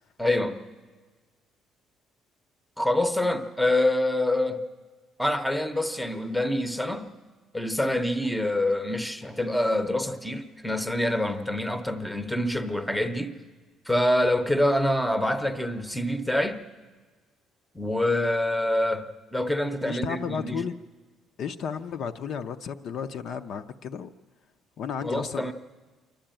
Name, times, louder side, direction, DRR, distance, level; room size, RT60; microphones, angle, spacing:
voice 1, 0.2-0.7 2.8-4.6 5.2-7.1 7.5-13.4 13.9-16.6 17.7-20.7 25.0-25.5, left 1 dB, ahead, 0.8 m, -26 dB
voice 2, 19.9-20.8 21.4-24.1 24.8-25.5, left 7 dB, 50° left, 0.6 m, -33 dB
27.0 x 11.5 x 8.9 m
cardioid pair, 170°, 0 cm